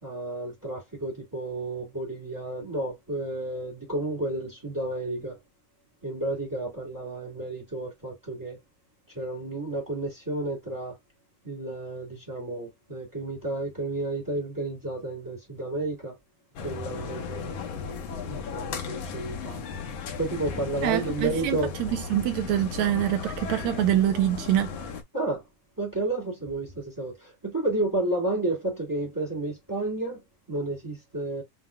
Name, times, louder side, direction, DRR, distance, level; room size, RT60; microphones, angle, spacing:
voice 1, 0.0-5.4 6.0-8.6 9.1-10.9 11.4-16.1 16.6-17.5 18.3-19.6 20.2-21.7 25.1-25.4 25.8-30.2 30.5-31.4, right 2 dB, 15° right, 0.8 m, -31 dB
sound 1, 16.6-25.0, left 6 dB, 70° left, 1.6 m, -36 dB
voice 2, 20.8-24.7, right 12 dB, 80° right, 1.6 m, -25 dB
7.3 x 2.7 x 2.2 m
omnidirectional pair, 3.8 m